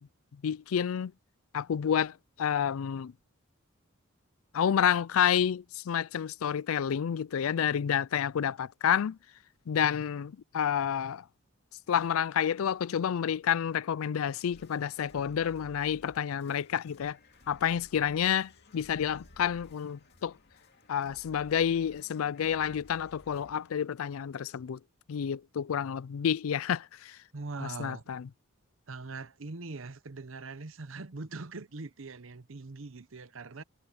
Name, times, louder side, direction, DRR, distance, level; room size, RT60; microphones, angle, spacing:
voice 1, 0.4-1.1 1.5-3.1 4.5-9.2 9.7-11.2 11.9-17.2 17.5-20.3 20.9-24.8 25.1-27.2 27.6-28.3, left 8 dB, 85° left, 0.4 m, -29 dB
sound 1, 14.5-23.8, left 1 dB, 50° left, 2.3 m, -57 dB
voice 2, 27.3-28.0 28.9-33.6, right 3 dB, 70° right, 0.9 m, -42 dB
head